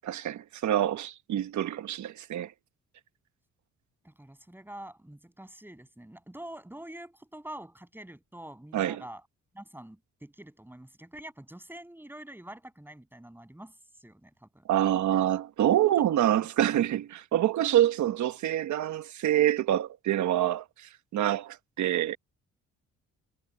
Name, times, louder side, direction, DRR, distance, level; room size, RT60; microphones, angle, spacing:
voice 1, 0.0-2.5 8.7-9.0 14.7-22.2, right 12 dB, 70° right, 1.2 m, -26 dB
voice 2, 4.0-9.2 9.5-14.6, right 1 dB, 5° right, 7.2 m, -46 dB
cardioid pair, 90°, 30 cm